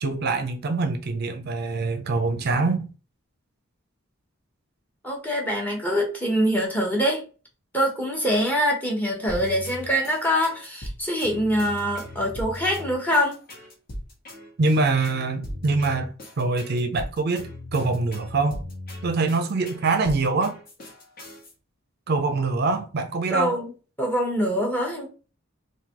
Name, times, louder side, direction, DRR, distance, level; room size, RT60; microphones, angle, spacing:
voice 1, 0.0-2.9 14.6-18.6 19.0-20.6 22.1-23.6, right 3 dB, 50° right, 0.5 m, -24 dB
voice 2, 5.0-7.2 7.7-13.4 23.3-23.7 24.0-25.1, equal, 10° left, 1.0 m, -24 dB
sound 1, 9.3-21.5, left 1 dB, 45° left, 1.3 m, -38 dB
3.8 x 2.6 x 2.9 m
head